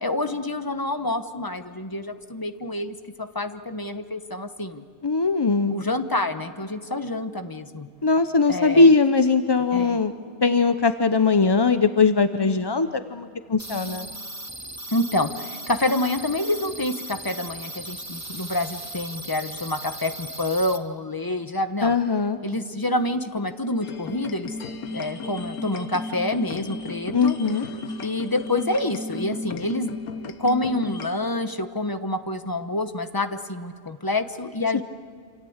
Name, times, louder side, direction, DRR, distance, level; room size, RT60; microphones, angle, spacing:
voice 1, 0.0-4.8 5.7-7.9 8.5-8.9 9.7-10.0 14.9-21.9 22.4-24.5 24.9-27.4 28.0-34.8, left 1 dB, 15° left, 9 dB, 1.0 m, -27 dB
voice 2, 5.0-5.8 8.0-10.1 10.4-14.1 21.8-22.4 27.1-27.6, left 4 dB, 35° left, 10 dB, 0.3 m, -20 dB
sound 1, 13.6-20.8, right 1 dB, 10° right, 1.1 m, -37 dB
sound 2, 23.8-31.1, left 3 dB, 80° left, 1.5 m, -35 dB
27.5 x 27.0 x 8.0 m, 2.2 s
omnidirectional pair, 1.5 m